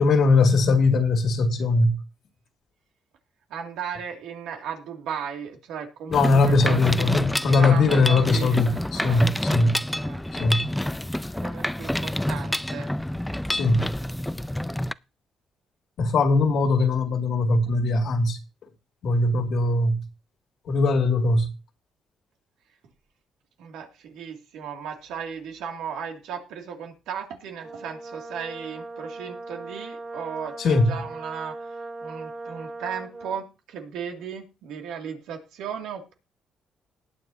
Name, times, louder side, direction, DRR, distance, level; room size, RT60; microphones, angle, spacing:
voice 1, 0.0-2.0 6.1-9.8 10.4-10.6 13.5-13.9 16.0-18.4 19.0-20.0 20.7-21.5 30.6-31.0, left 3 dB, 65° left, 2.2 m, -20 dB
voice 2, 3.5-7.1 7.5-9.3 9.9-10.2 11.4-12.9 23.6-31.7 32.0-36.1, right 7 dB, 90° right, 2.3 m, -36 dB
Mechanisms, 6.1-14.9, left 1 dB, 5° left, 0.4 m, -28 dB
Brass instrument, 27.6-33.5, right 3 dB, 35° right, 2.0 m, -39 dB
19.5 x 7.0 x 2.8 m
cardioid pair, 90°, 0 cm